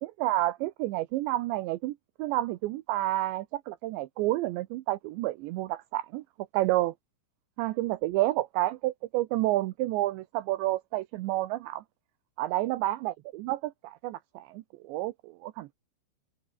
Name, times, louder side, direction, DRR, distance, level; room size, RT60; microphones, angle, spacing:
voice 1, 0.0-6.2 6.5-6.9 7.6-11.8 12.4-15.7, right 16 dB, 80° right, 2.7 m, -30 dB
omnidirectional pair, 6.0 m